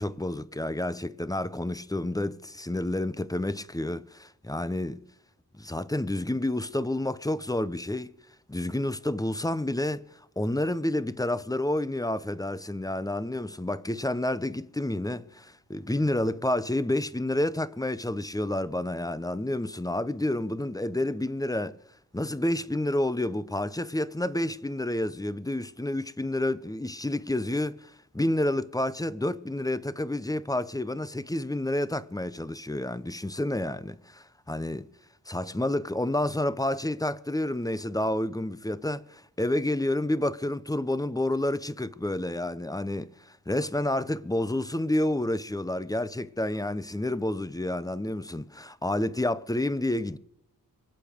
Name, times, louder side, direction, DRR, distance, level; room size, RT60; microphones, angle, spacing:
voice 1, 0.0-5.0 5.5-8.1 8.5-10.1 10.4-21.8 22.1-34.9 35.3-50.2, left 1 dB, 10° left, 0.8 m, -29 dB
25.0 x 8.3 x 5.2 m
cardioid pair, 65°, 36 cm